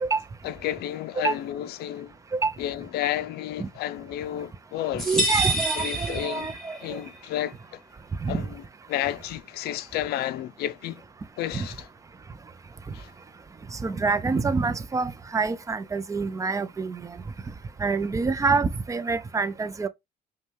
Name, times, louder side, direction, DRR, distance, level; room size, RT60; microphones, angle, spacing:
voice 1, 0.4-2.1 2.6-5.1 5.8-6.5 6.8-7.8 8.3-8.5 8.9-11.0 11.4-11.8 12.9-13.1, left 12 dB, 70° left, 0.4 m, -31 dB
sound 1, 5.0-6.9, right 1 dB, ahead, 1.8 m, -27 dB
voice 2, 5.1-6.8 8.2-8.5 11.5-11.7 13.8-17.0 17.8-19.9, right 4 dB, 20° right, 0.5 m, -26 dB
5.2 x 2.2 x 3.2 m
cardioid pair, 110°, 17 cm